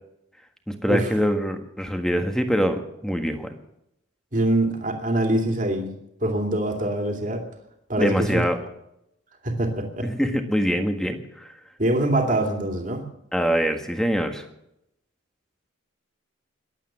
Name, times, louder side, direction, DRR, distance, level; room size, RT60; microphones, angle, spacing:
voice 1, 0.7-3.5 8.0-8.6 10.0-11.5 13.3-14.5, equal, 5° left, 6 dB, 1.6 m, -24 dB
voice 2, 4.3-5.9 6.2-7.4 7.9-8.4 9.4-10.1 11.8-13.0, right 1 dB, 40° right, 3 dB, 2.5 m, -24 dB
22.0 x 8.7 x 7.3 m, 0.80 s
head